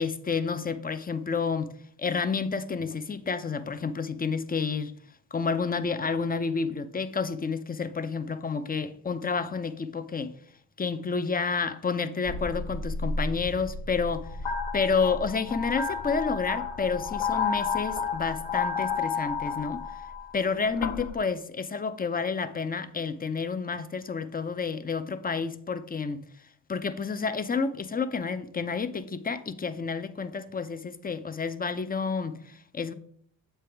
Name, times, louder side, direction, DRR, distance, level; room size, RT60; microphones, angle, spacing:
voice 1, 0.0-5.0 5.3-10.4 10.8-14.3 14.7-19.8 20.3-26.3 26.7-32.9, left 5 dB, 20° left, 0.5 m, -30 dB
sound 1, 12.3-21.2, left 5 dB, 65° left, 1.0 m, -31 dB
7.6 x 3.4 x 4.5 m
supercardioid pair, 50°, 47 cm